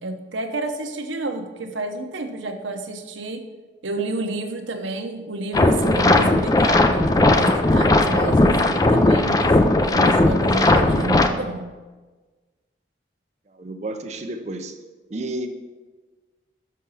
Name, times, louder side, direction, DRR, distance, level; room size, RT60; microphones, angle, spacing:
voice 1, 0.0-3.4 3.8-11.7, right 2 dB, 90° right, 6 dB, 0.8 m, -29 dB
sound 1, 5.5-11.3, left 2 dB, 20° left, 0.3 m, -17 dB
voice 2, 13.5-14.8 15.1-15.5, right 2 dB, 35° right, 6 dB, 0.6 m, -31 dB
6.3 x 5.6 x 5.5 m, 1.3 s
head